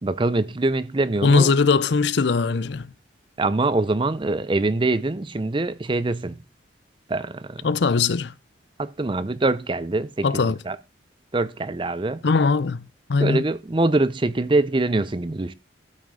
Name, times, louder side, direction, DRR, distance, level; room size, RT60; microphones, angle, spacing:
voice 1, 0.0-1.5 3.4-6.4 7.1-7.6 8.8-10.8 11.3-12.2 13.2-15.5, right 2 dB, 25° right, 0.5 m, -24 dB
voice 2, 1.2-2.9 7.6-8.3 10.2-10.6 12.2-12.8 13.1-13.4, left 4 dB, 60° left, 0.5 m, -20 dB
12.5 x 6.2 x 3.7 m
head